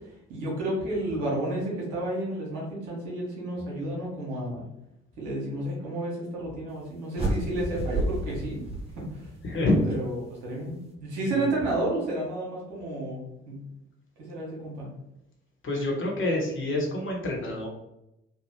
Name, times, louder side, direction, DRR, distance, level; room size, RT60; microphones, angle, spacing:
voice 1, 0.3-4.6 5.2-8.6 9.0-9.3 9.8-13.6 14.2-14.9, right 1 dB, 70° right, -3 dB, 1.4 m, -31 dB
sound 1, 7.1-9.5, right 1 dB, 20° right, 1.2 m, -30 dB
voice 2, 9.4-9.8 11.3-11.5 15.6-17.7, left 2 dB, 40° left, -1 dB, 1.2 m, -27 dB
3.3 x 2.4 x 3.1 m, 0.85 s
hypercardioid pair, 50°, 31 cm